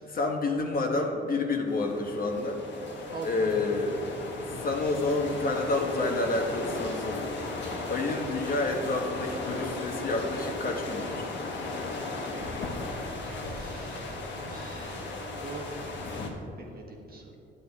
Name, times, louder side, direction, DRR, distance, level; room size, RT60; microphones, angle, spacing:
voice 1, 0.0-2.6 3.2-4.0 4.6-7.3 7.9-11.3, left 2 dB, 45° left, 2 dB, 1.2 m, -29 dB
sound 1, 1.7-16.3, left 2 dB, 65° left, 1.3 m, -36 dB
voice 2, 13.2-14.1 14.4-15.7 16.6-17.2, right 4 dB, 50° right, 1 dB, 1.5 m, -43 dB
10.0 x 9.0 x 3.6 m, 2.8 s
cardioid pair, 90°, 20 cm